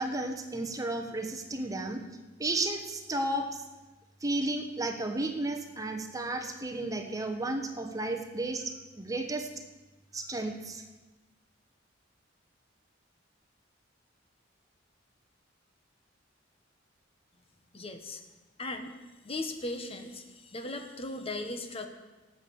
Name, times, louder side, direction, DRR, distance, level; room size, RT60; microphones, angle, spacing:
voice 1, 0.0-2.0 2.4-3.6 4.2-9.5 10.1-10.8, right 2 dB, 20° right, 5 dB, 1.1 m, -33 dB
voice 2, 17.7-18.2 18.6-18.9 19.2-21.9, left 2 dB, 30° left, 6 dB, 1.1 m, -37 dB
18.0 x 7.8 x 7.0 m, 1.2 s
head